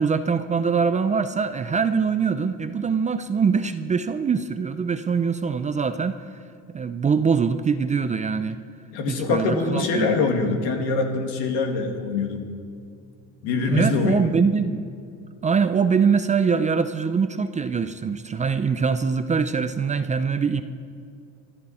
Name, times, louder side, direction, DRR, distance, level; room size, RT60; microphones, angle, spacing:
voice 1, 0.0-6.2 6.7-8.6 9.1-10.1 13.7-14.8 15.4-20.6, right 5 dB, 20° right, 10 dB, 0.4 m, -23 dB
voice 2, 8.9-12.5 13.4-14.2, left 3 dB, 80° left, 3 dB, 2.4 m, -24 dB
25.0 x 12.0 x 4.3 m, 2.4 s
cardioid pair, 125°, 39 cm